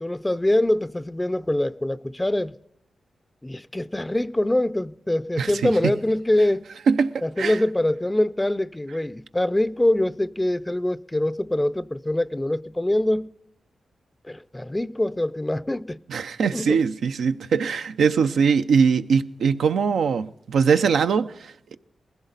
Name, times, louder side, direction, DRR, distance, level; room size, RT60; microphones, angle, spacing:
voice 1, 0.0-2.5 3.4-6.7 7.2-13.3 14.3-16.0 16.5-16.8, left 1 dB, 15° left, 0.5 m, -24 dB
voice 2, 5.4-5.9 6.9-7.6 16.1-21.7, right 6 dB, 85° right, 0.5 m, -22 dB
20.0 x 15.5 x 4.0 m
cardioid pair, 55°, 0 cm